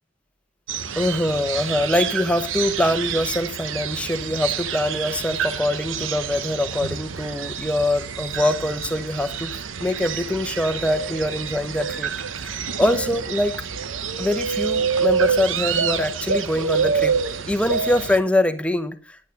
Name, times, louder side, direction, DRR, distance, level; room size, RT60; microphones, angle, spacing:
sound 1, 0.7-18.2, right 6 dB, 85° right, 0.9 m, -27 dB
voice 1, 1.0-9.5 9.8-13.5 14.2-17.2 17.5-19.2, left 1 dB, 5° left, 9 dB, 0.8 m, -24 dB
11.0 x 9.1 x 5.3 m, 0.41 s
head